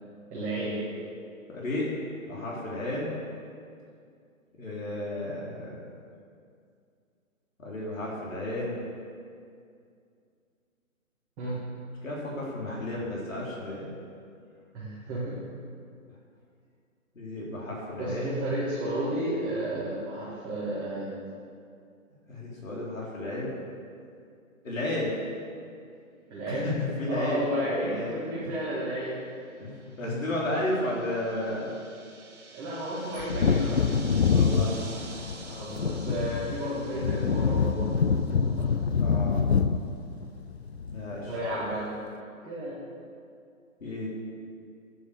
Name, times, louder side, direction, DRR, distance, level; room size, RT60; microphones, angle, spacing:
voice 1, 0.3-0.8 11.4-11.6 14.7-15.4 18.0-21.1 26.3-26.7 27.1-29.2 30.0-30.5 32.5-33.8 35.4-37.9 38.4-38.8 41.3-41.9 42.4-42.8, right 1 dB, 10° right, -11 dB, 1.9 m, -32 dB
voice 2, 1.5-1.9 2.2-3.2 4.6-5.8 7.6-8.8 12.0-13.9 17.1-18.4 22.3-23.6 24.6-25.2 26.5-28.2 29.6-31.7 34.3-34.8 39.0-39.5 40.9-41.4 43.8-44.1, left 1 dB, 65° left, -5 dB, 3.8 m, -33 dB
sound 1, 29.1-38.9, right 4 dB, 55° right, 2.0 m, -49 dB
Wind / Thunder, 33.2-41.4 41.7-41.8, left 5 dB, 50° left, 0.5 m, -26 dB
11.5 x 9.5 x 6.8 m, 2.4 s
hypercardioid pair, 165°, 42 cm